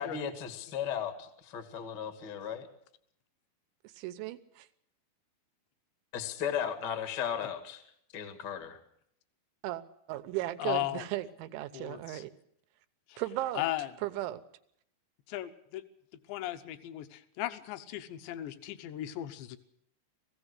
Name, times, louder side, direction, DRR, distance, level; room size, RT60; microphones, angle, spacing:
voice 1, 0.0-2.7 6.1-7.8 8.1-8.8, left 8 dB, 55° left, 8 dB, 1.2 m, -36 dB
voice 2, 4.0-4.7 9.6-9.8 10.1-12.3 13.2-13.6 14.0-14.4, right 15 dB, 90° right, 10 dB, 3.4 m, -36 dB
voice 3, 10.6-11.1 11.7-12.2 13.1-13.2 13.6-13.9 15.3-15.8 16.3-19.6, left 15 dB, 75° left, 10 dB, 3.1 m, -36 dB
20.0 x 16.0 x 8.1 m, 0.71 s
omnidirectional pair, 5.2 m